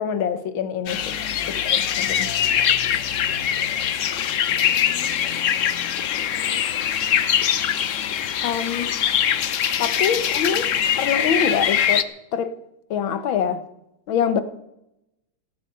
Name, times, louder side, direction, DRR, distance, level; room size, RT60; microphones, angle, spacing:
voice 1, 0.0-1.2 1.5-2.3 8.4-9.0 9.8-10.7 11.0-12.1 12.3-12.5 12.9-13.6 14.1-14.4, left 7 dB, 80° left, 1.9 m, -25 dB
sound 1, 0.9-12.0, left 9 dB, 60° left, 0.8 m, -22 dB
voice 2, 1.3-1.8 3.2-4.8 6.3-6.6, left 1 dB, 25° right, 8.1 m, -46 dB
15.5 x 13.0 x 5.5 m
omnidirectional pair, 2.2 m